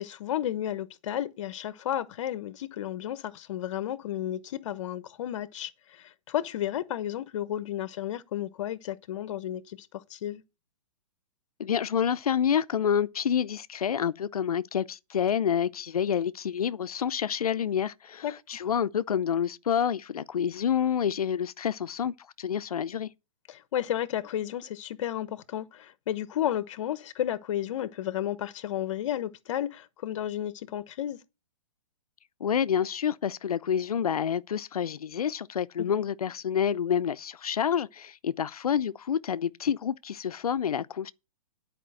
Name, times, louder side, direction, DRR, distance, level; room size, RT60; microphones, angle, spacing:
voice 1, 0.0-10.4 18.2-18.3 23.5-31.2 35.8-35.9, left 11 dB, 55° left, 1.1 m, -32 dB
voice 2, 11.6-23.1 32.4-41.1, left 8 dB, 90° left, 0.6 m, -28 dB
10.0 x 5.1 x 7.7 m
hypercardioid pair, 145°, 18 cm